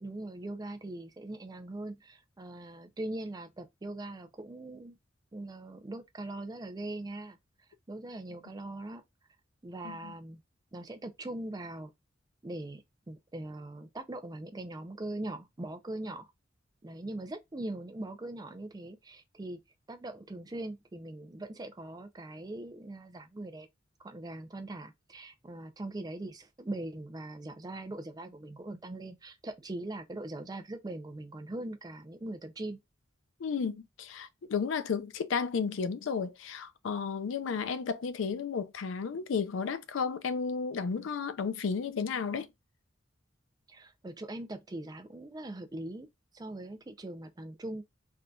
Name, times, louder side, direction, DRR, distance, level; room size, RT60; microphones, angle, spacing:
voice 1, 0.0-5.0 5.3-7.4 7.9-9.0 9.6-10.4 10.7-11.9 12.4-16.3 16.8-19.6 19.9-23.7 24.0-32.8 43.7-46.1 46.3-47.8, right 1 dB, 20° right, 0.4 m, -41 dB
voice 2, 33.4-42.5, left 5 dB, 90° left, 0.4 m, -33 dB
3.5 x 2.5 x 2.3 m
head